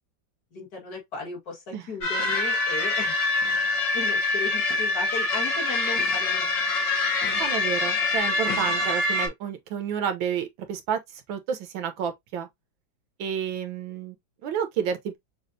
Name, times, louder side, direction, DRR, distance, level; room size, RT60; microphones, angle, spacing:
voice 1, 0.5-3.1 3.9-6.7, left 4 dB, 50° left, 2.1 m, -36 dB
sound 1, 2.0-9.3, left 2 dB, 70° left, 2.0 m, -25 dB
voice 2, 7.4-11.0 11.3-12.5 13.2-14.1 14.4-15.2, right 8 dB, 80° right, 1.6 m, -30 dB
6.3 x 2.5 x 2.6 m
omnidirectional pair, 2.1 m